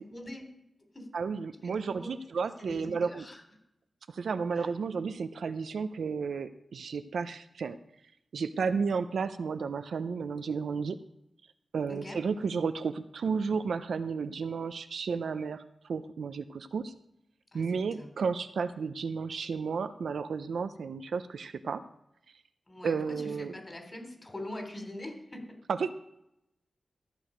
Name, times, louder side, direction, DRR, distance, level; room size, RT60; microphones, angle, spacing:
voice 1, 0.1-0.5 0.9-1.1 1.6-2.1 2.4-3.4 4.5-4.7 11.9-12.2 17.5-17.6 18.0-18.1 22.7-25.6, left 1 dB, 35° left, 3 dB, 3.2 m, -43 dB
voice 2, 1.1-3.3 4.1-7.8 8.3-11.0 11.7-15.6 15.9-16.9 17.5-21.8 22.8-23.5 25.7-25.9, right 5 dB, 85° right, 11 dB, 0.5 m, -32 dB
14.0 x 6.5 x 5.0 m, 0.83 s
cardioid pair, 50°, 0 cm